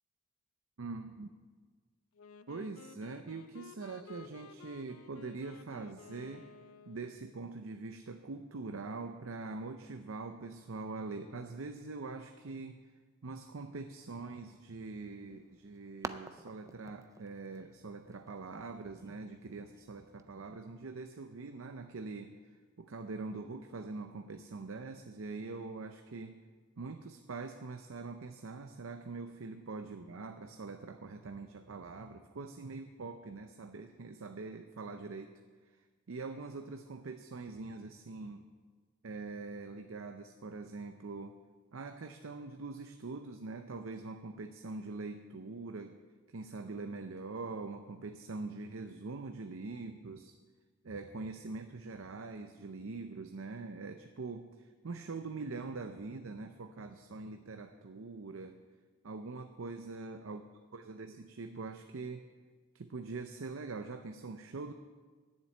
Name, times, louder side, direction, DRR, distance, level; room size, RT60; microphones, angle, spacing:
voice 1, 0.8-1.3 2.5-6.4 6.9-12.8 13.2-26.4 26.8-35.3 36.1-38.4 39.0-41.4 41.7-46.0 46.3-50.4 50.8-58.6 59.0-60.4 60.7-62.3 62.7-64.7, right 3 dB, 70° right, 7 dB, 0.6 m, -43 dB
Wind instrument woodwind instrument, 2.1-7.3, left 4 dB, 85° left, 0.5 m, -54 dB
sound 1, 15.1-20.2, right 3 dB, 15° right, 0.4 m, -50 dB
10.0 x 7.5 x 8.7 m, 1.5 s
head